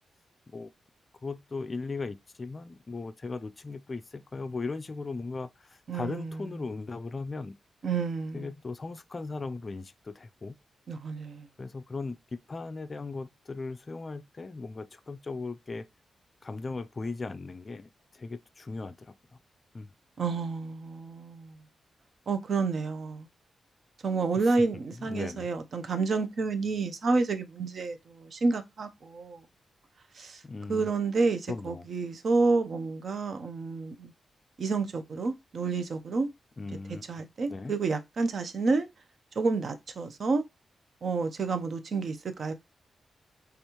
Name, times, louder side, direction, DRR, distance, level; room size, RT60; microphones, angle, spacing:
voice 1, 1.2-7.6 8.3-10.6 11.6-12.2 12.5-15.9 16.4-19.4 19.7-19.9 24.4-24.5 25.0-25.5 30.4-30.9 31.5-31.9 36.6-37.0 37.5-37.7, left 3 dB, 25° left, 0.4 m, -38 dB
voice 2, 5.9-6.5 7.8-8.5 10.9-11.5 20.2-21.6 22.3-23.3 24.0-29.4 30.2-30.4 30.7-34.1 34.6-36.3 37.1-38.9 39.4-40.4 41.0-42.5, right 4 dB, 50° right, 0.7 m, -29 dB
5.3 x 3.5 x 2.9 m
wide cardioid pair, 165°, 0 cm